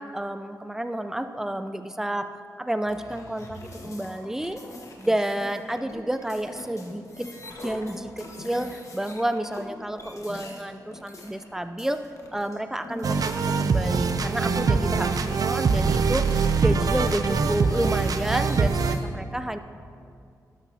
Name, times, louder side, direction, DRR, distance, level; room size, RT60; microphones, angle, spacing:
voice 1, 0.0-2.3 2.6-4.6 5.0-7.3 7.6-12.0 12.3-16.3 16.6-19.6, right 1 dB, 5° right, 9 dB, 0.5 m, -30 dB
sound 1, 2.9-13.7 14.0-19.0, left 1 dB, 50° left, 1.5 m, -43 dB
sound 2, 13.0-19.0, right 5 dB, 60° right, 0.5 m, -23 dB
12.0 x 11.5 x 2.8 m, 2.3 s
cardioid pair, 80°, 7 cm